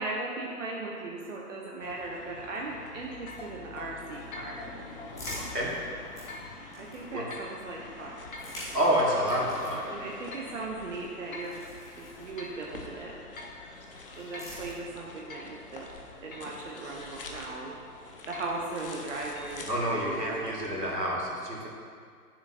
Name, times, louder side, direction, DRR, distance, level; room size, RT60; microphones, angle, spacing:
voice 1, 0.0-4.7 6.8-8.2 9.9-11.6 12.0-13.1 14.2-16.0 16.2-17.8 18.3-20.7, right 3 dB, 50° right, -1 dB, 0.9 m, -38 dB
sound 1, 1.8-21.1, left 3 dB, 35° left, 0.7 m, -46 dB
sound 2, 3.3-3.5 4.3-4.6 5.3-5.6 6.3-6.5 7.3-7.5 8.3-8.6 9.3-9.6 10.3-10.6 11.3-11.6 12.1-12.6 13.4-13.6 14.3-14.6 15.3-15.5 16.3-16.6 17.3-17.7 18.3-18.7 19.3-19.5, left 2 dB, 60° left, 1.0 m, -44 dB
sound 3, 4.8-7.4 8.2-12.8 13.7-15.2, left 1 dB, 5° left, 1.4 m, -47 dB
voice 2, 8.7-9.9 19.7-21.7, equal, 85° right, -4 dB, 2.0 m, -28 dB
9.6 x 7.0 x 2.7 m, 2.1 s
figure-of-eight pair, 130°, 47 cm